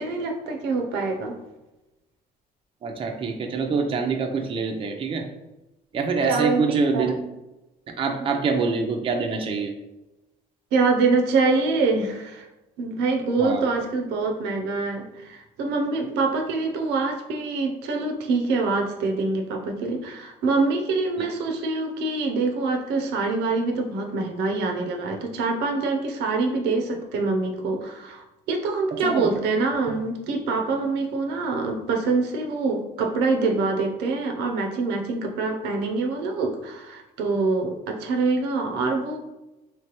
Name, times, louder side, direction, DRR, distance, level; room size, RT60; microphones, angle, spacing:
voice 1, 0.0-1.4 6.3-7.1 10.7-12.5 12.8-39.2, right 3 dB, 90° right, 3 dB, 0.6 m, -25 dB
voice 2, 2.8-5.3 5.9-7.2 7.9-9.7 13.4-13.7 29.0-29.3 29.9-30.0, right 4 dB, 30° right, 3 dB, 0.5 m, -25 dB
3.2 x 3.2 x 2.9 m, 1.0 s
cardioid pair, 110°, 17 cm